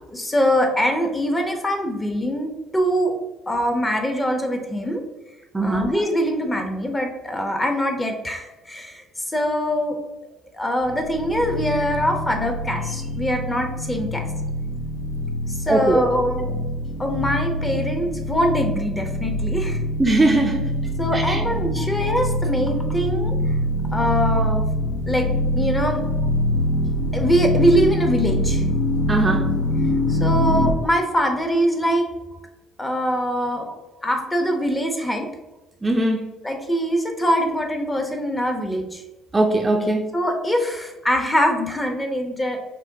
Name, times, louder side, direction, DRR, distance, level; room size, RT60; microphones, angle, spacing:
voice 1, 0.1-3.1 3.5-5.0 5.6-10.0 10.5-14.3 15.5-16.6 17.0-19.8 21.0-23.5 23.9-24.7 25.1-25.3 25.5-26.0 27.1-28.6 30.1-32.1 32.8-33.7 34.0-35.3 36.4-39.0 40.1-42.6, equal, 20° left, 4 dB, 0.8 m, -23 dB
voice 2, 5.5-5.9 15.7-16.0 20.0-20.6 21.1-21.4 21.8-21.9 23.2-23.3 29.1-29.5 35.8-36.2 39.3-40.1, right 2 dB, 20° right, 2 dB, 0.5 m, -20 dB
sound 1, 10.9-30.7, left 1 dB, 55° left, 0.5 m, -24 dB
5.4 x 2.2 x 2.6 m, 1.0 s
figure-of-eight pair, 50°, 0 cm